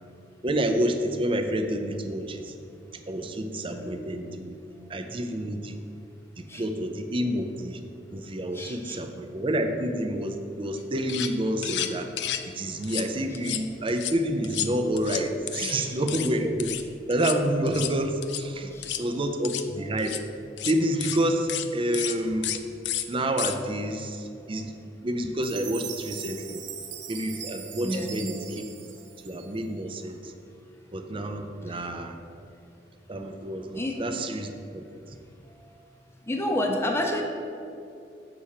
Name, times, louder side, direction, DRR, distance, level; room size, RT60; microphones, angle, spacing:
voice 1, 0.4-2.5 3.1-4.6 4.9-5.7 6.4-7.8 8.1-12.1 12.5-16.8 17.1-18.7 19.0-20.2 20.7-22.6 23.1-24.7 25.0-26.6 27.1-28.6 29.2-30.3 30.9-32.2 33.1-34.8, right 1 dB, 30° right, 6 dB, 0.5 m, -28 dB
voice 2, 8.5-9.0 15.6-16.0 18.7-19.2 27.8-28.2 31.7-31.9 33.7-34.0 36.2-37.2, left 1 dB, 15° left, 1 dB, 0.7 m, -30 dB
sound 1, 10.8-10.9 11.1-11.3 11.6-12.5 12.8-13.1 13.3-14.1 14.4-15.8 16.1-16.3 16.6-16.8 17.1-17.4 17.7-17.9 18.2-18.4 18.8-19.0 19.4-19.7 20.0-20.2 20.6-20.7 21.0-21.2 21.5-21.7 21.9-22.2 22.4-22.6 22.8-23.0 23.4-23.6, left 11 dB, 70° left, 0.4 m, -31 dB
Chime, 25.4-29.8, right 8 dB, 90° right, 0.8 m, -40 dB
7.0 x 4.3 x 6.5 m, 2.6 s
head